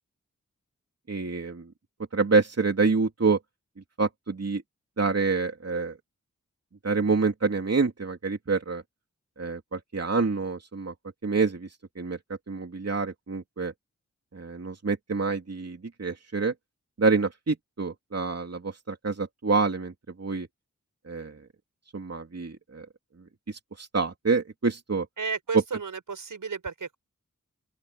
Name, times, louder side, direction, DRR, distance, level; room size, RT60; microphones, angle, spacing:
voice 1, 1.1-1.7 2.1-3.4 4.0-4.6 5.0-6.0 6.8-8.8 9.4-10.9 11.2-11.7 12.0-12.2 12.5-13.7 14.3-16.5 17.0-19.9 20.2-20.5 21.1-21.4 21.9-22.9 23.5-25.1, right 4 dB, 55° right, 3.0 m, -27 dB
voice 2, 25.2-27.0, right 5 dB, 90° right, 6.0 m, -33 dB
open air
cardioid pair, 55°, 31 cm